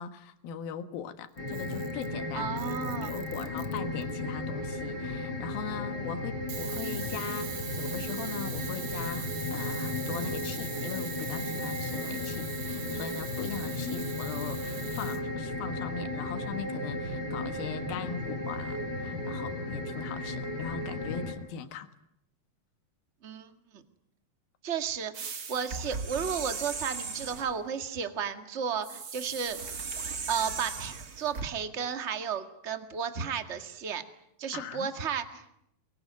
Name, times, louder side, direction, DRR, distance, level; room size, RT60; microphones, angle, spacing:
voice 1, 0.0-7.5 7.8-21.9 34.5-34.9, left 8 dB, 80° left, 10 dB, 3.4 m, -40 dB
sound 1, 1.4-21.3, left 2 dB, 30° left, 4.9 m, -35 dB
Camera, 1.4-2.1 2.6-4.1 6.5-15.2, right 9 dB, 75° right, 1.0 m, -42 dB
voice 2, 2.3-3.1 13.7-14.2 23.2-23.8 24.6-29.6 30.3-34.0 34.4-35.5, right 7 dB, 30° right, 7 dB, 1.3 m, -33 dB
sound 2, 25.1-27.6 28.8-31.5, right 5 dB, 50° right, 1.0 m, -37 dB
24.5 x 23.0 x 9.5 m, 0.77 s
omnidirectional pair, 4.2 m